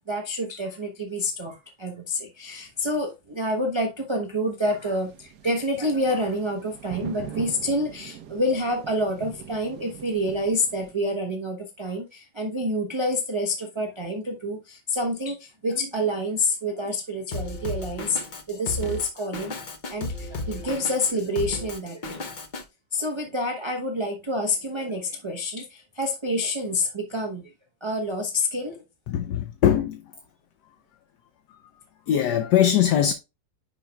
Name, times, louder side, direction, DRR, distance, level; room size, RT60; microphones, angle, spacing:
voice 1, 0.1-18.2 18.5-19.6 19.9-22.2 22.9-27.4 27.8-28.8, left 1 dB, 25° right, 0.6 m, -28 dB
sound 1, 4.7-10.9, right 8 dB, 70° right, 1.3 m, -42 dB
Drum kit, 17.3-22.6, left 3 dB, 45° left, 0.6 m, -34 dB
voice 2, 29.1-30.0 32.1-33.1, left 10 dB, 70° left, 1.2 m, -21 dB
10.0 x 4.4 x 2.2 m
omnidirectional pair, 1.9 m